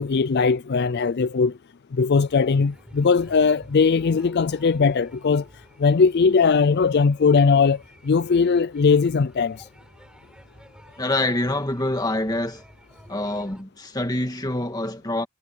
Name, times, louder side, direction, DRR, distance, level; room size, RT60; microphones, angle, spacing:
voice 1, 0.0-1.5 1.9-5.4 5.8-9.7, left 5 dB, 45° left, 0.4 m, -19 dB
sound 1, 2.1-13.6, equal, 5° right, 7.7 m, -50 dB
voice 2, 11.0-12.6 13.1-15.3, left 1 dB, 15° left, 1.9 m, -26 dB
head